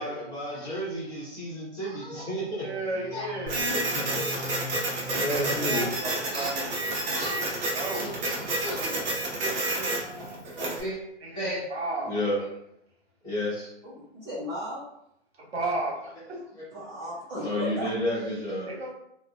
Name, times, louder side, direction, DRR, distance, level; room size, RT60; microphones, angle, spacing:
voice 1, 0.0-2.7 3.1-3.3 3.7-4.6 5.1-5.9 6.3-6.5 7.1-7.5 7.9-9.0 10.1-10.2 10.8-11.0 11.3-11.6 12.0-12.4 13.2-13.7 17.4-18.7, equal, 10° left, -9 dB, 1.0 m, -32 dB
voice 2, 2.6-3.8 5.0-8.2 9.4-10.2 11.2-12.2 15.4-16.1 18.6-18.9, right 2 dB, 60° right, -2 dB, 1.1 m, -35 dB
sound 1, 2.9-6.5, left 3 dB, 80° left, 1.0 m, -43 dB
Printer, 3.5-10.8, right 2 dB, 40° right, 0.7 m, -30 dB
sound 2, 5.0-6.2 6.5-9.5, equal, 25° left, 0.7 m, -46 dB
voice 3, 13.8-14.8 16.7-17.9, equal, 20° right, -10 dB, 0.4 m, -35 dB
2.4 x 2.1 x 2.5 m, 0.77 s
figure-of-eight pair, 125°, 35 cm